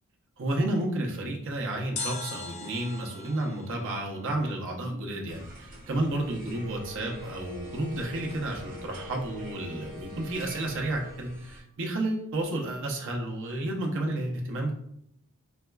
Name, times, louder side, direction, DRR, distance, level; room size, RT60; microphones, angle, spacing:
voice 1, 0.4-14.7, right 1 dB, 60° right, 0 dB, 0.7 m, -31 dB
sound 1, 2.0-5.0 5.3-5.4, left 4 dB, 30° left, 0.3 m, -40 dB
sound 2, 5.3-11.6, right 1 dB, 40° right, 1.1 m, -48 dB
Wind instrument woodwind instrument, 6.5-11.2, left 2 dB, 70° left, 0.7 m, -45 dB
4.2 x 2.3 x 2.2 m, 0.72 s
head